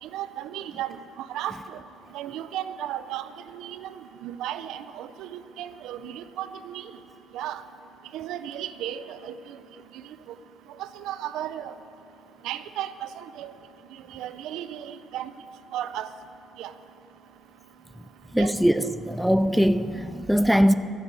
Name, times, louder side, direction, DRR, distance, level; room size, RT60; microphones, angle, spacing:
voice 1, 0.0-0.9 1.2-1.5 2.1-3.3 3.5-3.9 4.2-6.9 7.3-7.6 8.1-9.3 10.8-11.7 12.4-13.5 14.1-15.3 15.7-16.1 16.6-16.7 18.4-18.5, right 11 dB, 85° right, 0.5 m, -34 dB
voice 2, 18.3-20.7, equal, ahead, 0.4 m, -21 dB
12.0 x 7.6 x 8.6 m
cardioid pair, 125°, 0 cm